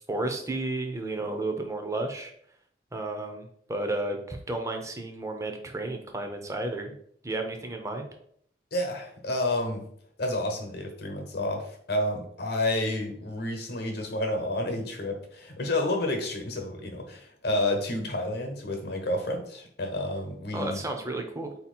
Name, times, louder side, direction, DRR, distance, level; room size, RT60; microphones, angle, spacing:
voice 1, 0.1-2.3 2.9-6.9 7.2-8.1 20.5-21.5, right 2 dB, 15° right, 4 dB, 0.6 m, -32 dB
voice 2, 8.7-9.8 10.2-20.8, left 1 dB, 60° left, 3 dB, 1.0 m, -30 dB
4.3 x 2.9 x 4.2 m, 0.65 s
head